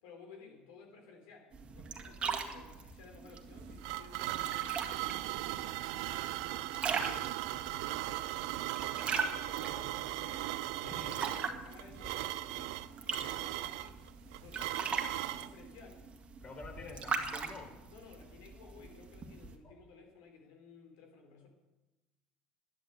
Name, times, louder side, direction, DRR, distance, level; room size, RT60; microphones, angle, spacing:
voice 1, 0.0-6.4 6.7-10.5 10.8-12.9 13.2-16.0 16.8-17.0 17.9-21.5, left 5 dB, 80° left, 3 dB, 3.7 m, -56 dB
sound 1, 1.5-19.5, right 5 dB, 35° right, 1.9 m, -41 dB
sound 2, 3.4-15.5, right 16 dB, 80° right, 0.5 m, -38 dB
voice 2, 10.8-11.2 16.4-17.8 19.6-19.7, left 3 dB, 35° left, 2 dB, 4.2 m, -48 dB
11.0 x 11.0 x 8.3 m, 1.1 s
supercardioid pair, 85°, 3 cm